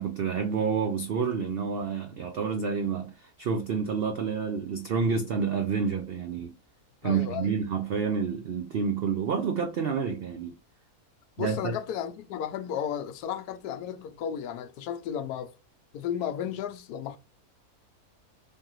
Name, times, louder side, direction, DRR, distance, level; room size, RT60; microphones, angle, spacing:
voice 1, 0.0-6.5 7.0-10.6 11.4-11.8, right 6 dB, 85° right, 0.5 m, -29 dB
voice 2, 7.0-7.5 11.4-15.5 15.9-17.2, left 9 dB, 85° left, 1.1 m, -34 dB
3.5 x 3.3 x 2.9 m
omnidirectional pair, 1.6 m